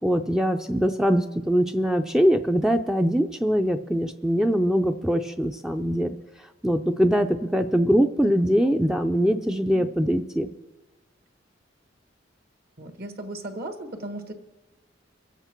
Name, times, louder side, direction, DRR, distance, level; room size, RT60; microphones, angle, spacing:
voice 1, 0.0-6.1 6.6-10.5, equal, 5° right, 6 dB, 0.4 m, -22 dB
voice 2, 12.8-14.3, right 1 dB, 55° right, 5 dB, 1.5 m, -36 dB
23.0 x 8.1 x 4.5 m, 1.1 s
head